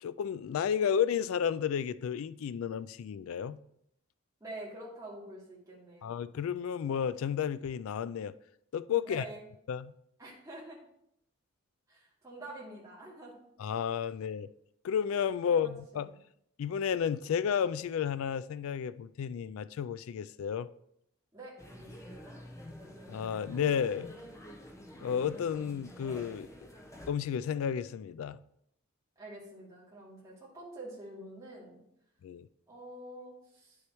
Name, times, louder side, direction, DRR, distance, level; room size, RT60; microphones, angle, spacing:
voice 1, 0.0-3.6 6.0-8.3 8.7-9.2 9.7-9.9 13.6-14.5 14.8-16.1 16.6-20.7 23.1-24.1 25.0-26.5 27.1-28.4 32.2-32.5, left 8 dB, 70° left, 0.3 m, -32 dB
voice 2, 4.4-6.1 9.0-9.4 10.2-10.8 11.9-13.3 15.5-16.0 21.3-22.4 29.2-31.8 32.7-33.8, right 1 dB, 15° right, 2.5 m, -47 dB
sound 1, 21.6-27.1, equal, 15° left, 0.8 m, -48 dB
9.8 x 6.4 x 3.0 m
head